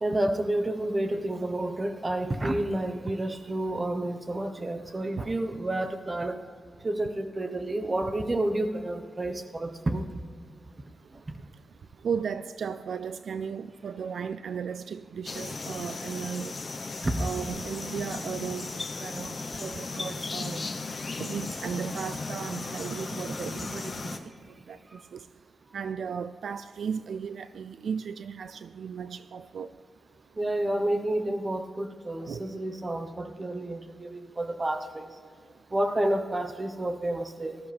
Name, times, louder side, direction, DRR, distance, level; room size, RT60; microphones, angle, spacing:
voice 1, 0.0-6.4 6.8-10.1 11.3-11.4 17.0-17.3 30.4-35.1 35.7-37.6, right 1 dB, 25° right, 1.1 m, -30 dB
voice 2, 12.0-16.5 17.2-18.7 19.0-20.6 21.2-24.0 24.7-24.8 25.1-25.2 25.7-29.7 32.3-32.4, right 6 dB, 75° right, 0.3 m, -35 dB
sound 1, 15.3-24.2, left 3 dB, 40° left, 1.0 m, -36 dB
18.5 x 13.5 x 3.5 m
wide cardioid pair, 100°, 0 cm